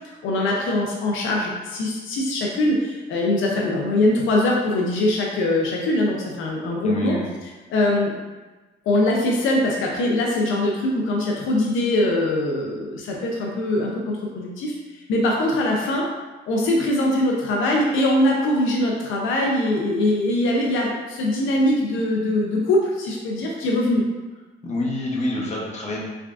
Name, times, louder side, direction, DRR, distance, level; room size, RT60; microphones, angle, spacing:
voice 1, 0.2-7.2 7.4-8.1 8.9-16.1 16.5-24.1, left 1 dB, 80° left, -1 dB, 0.6 m, -22 dB
voice 2, 6.8-7.3 24.6-26.0, left 1 dB, 35° left, -3 dB, 0.9 m, -27 dB
3.5 x 3.3 x 2.4 m, 1.2 s
cardioid pair, 90°, 20 cm